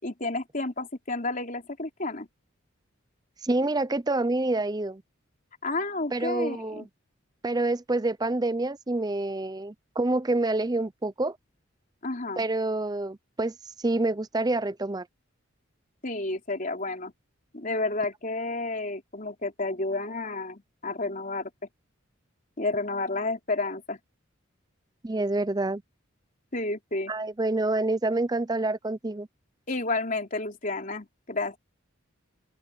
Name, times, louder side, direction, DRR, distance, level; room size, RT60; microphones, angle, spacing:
voice 1, 0.0-2.3 5.6-6.9 12.0-12.5 16.0-17.1 17.5-21.5 22.6-24.0 26.5-27.1 29.7-31.6, left 2 dB, 40° left, 3.9 m, -31 dB
voice 2, 3.4-5.0 6.1-6.9 7.4-11.4 12.4-15.1 25.0-25.8 27.1-29.3, right 2 dB, 20° right, 0.6 m, -27 dB
open air
head